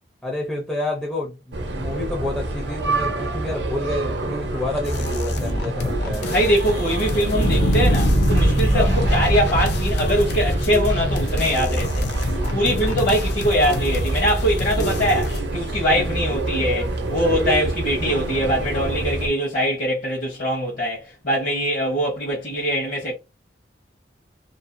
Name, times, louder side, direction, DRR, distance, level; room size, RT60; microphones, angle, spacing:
voice 1, 0.2-6.4 8.7-9.0, left 2 dB, 5° left, 0.4 m, -29 dB
sound 1, 1.5-19.3, right 2 dB, 65° right, 0.6 m, -27 dB
sound 2, 4.8-15.4, left 1 dB, 65° left, 0.5 m, -27 dB
voice 2, 6.3-12.2 12.5-23.1, equal, 50° left, 0.9 m, -22 dB
sound 3, 7.3-13.7 14.1-14.7, equal, 85° left, 1.1 m, -22 dB
2.5 x 2.3 x 2.5 m
head